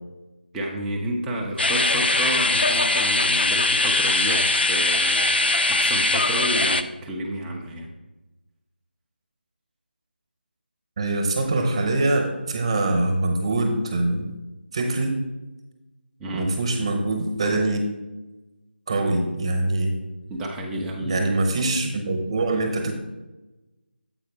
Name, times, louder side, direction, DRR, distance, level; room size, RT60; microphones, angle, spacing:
voice 1, 0.5-5.3 5.7-7.9 16.2-16.5 20.3-21.4, right 1 dB, 5° right, -1 dB, 0.4 m, -30 dB
sound 1, 1.6-6.8, left 2 dB, 65° left, 0.5 m, -21 dB
voice 2, 11.0-14.3 14.7-15.2 16.3-17.8 18.9-19.9 21.0-22.9, right 2 dB, 30° right, 4 dB, 1.0 m, -23 dB
7.8 x 4.8 x 4.7 m, 1.1 s
figure-of-eight pair, 160°, 6 cm